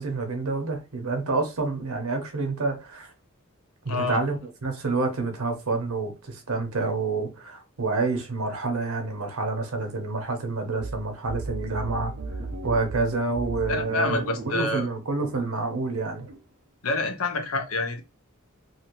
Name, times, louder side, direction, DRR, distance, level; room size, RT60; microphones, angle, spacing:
voice 1, 0.0-3.1 3.8-12.1 12.6-16.3, right 3 dB, 90° right, 0.9 m, -28 dB
voice 2, 3.9-4.2 13.7-14.9 16.8-18.0, left 3 dB, 80° left, 0.7 m, -27 dB
sound 1, 10.8-16.4, right 2 dB, 55° right, 0.7 m, -37 dB
2.8 x 2.8 x 2.9 m
head